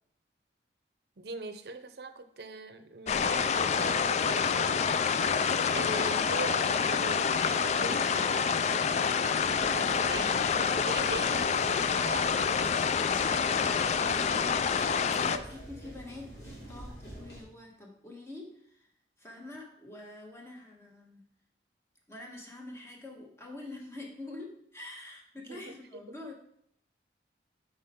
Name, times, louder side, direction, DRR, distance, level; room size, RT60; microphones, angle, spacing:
voice 1, 1.2-4.9 5.7-12.7 15.3-15.5 25.5-25.7 26.1-26.2, right 3 dB, 65° right, 9 dB, 0.6 m, -41 dB
sound 1, 3.1-15.4, left 6 dB, 40° left, 0.3 m, -27 dB
sound 2, 9.4-17.4, right 1 dB, 65° left, 2.7 m, -46 dB
voice 2, 13.2-13.9 14.6-18.9 19.2-21.3 22.1-26.4, left 2 dB, 15° left, 0 dB, 1.2 m, -46 dB
8.5 x 4.9 x 3.6 m, 0.67 s
head